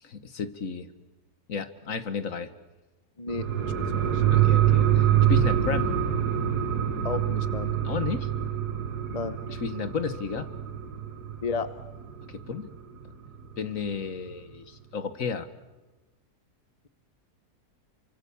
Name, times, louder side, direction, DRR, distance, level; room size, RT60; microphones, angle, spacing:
voice 1, 0.0-0.9 1.5-2.5 4.3-5.9 7.8-8.3 9.5-10.5 12.3-12.7 13.6-15.5, left 5 dB, 60° left, 10 dB, 1.7 m, -32 dB
sound 1, 3.3-12.4 12.7-12.8, right 10 dB, 90° right, 2.3 m, -25 dB
voice 2, 3.8-4.2 7.0-7.7 9.1-9.3 11.4-11.7, left 4 dB, 30° left, 11 dB, 0.8 m, -32 dB
29.0 x 25.0 x 7.1 m, 1.1 s
omnidirectional pair, 1.7 m